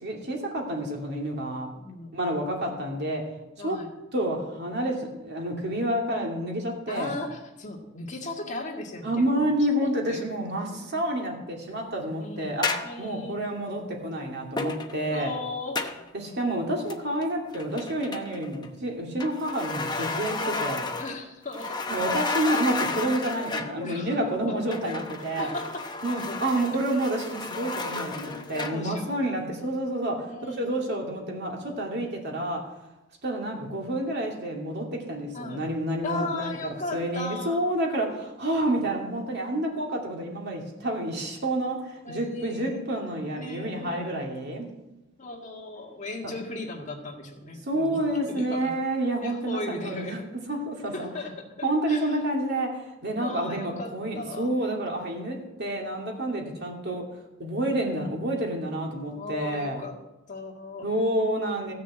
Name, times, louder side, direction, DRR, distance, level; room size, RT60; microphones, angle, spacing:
voice 1, 0.0-1.7 2.1-3.3 3.6-3.8 4.1-7.2 9.0-15.3 16.1-20.9 21.9-25.5 26.0-32.7 33.2-44.7 47.6-50.2 50.5-51.1 51.6-57.1 57.4-59.8 60.8-61.7, right 1 dB, 55° right, 0 dB, 2.6 m, -29 dB
voice 2, 1.7-2.2 3.6-3.9 6.9-9.5 9.8-11.0 12.2-12.5 12.8-13.4 15.1-15.9 21.0-21.8 23.8-24.2 24.5-25.1 25.4-25.9 26.3-26.4 28.1-29.1 30.3-30.9 35.3-35.6 36.0-37.6 42.0-42.8 43.3-44.3 45.2-48.0 48.3-48.7 49.2-50.3 50.9-51.5 51.9-52.2 53.2-54.5 55.6-56.1 56.6-56.9 59.1-59.9 60.3-60.9, left 2 dB, 35° left, 1 dB, 1.9 m, -37 dB
sound 1, 12.6-13.0 14.6-15.0 15.8-16.1 16.9-17.3 17.5-18.7 19.2-21.2 21.5-23.8 24.7-28.9, left 3 dB, 20° left, 0.9 m, -32 dB
15.0 x 6.7 x 8.0 m, 0.97 s
head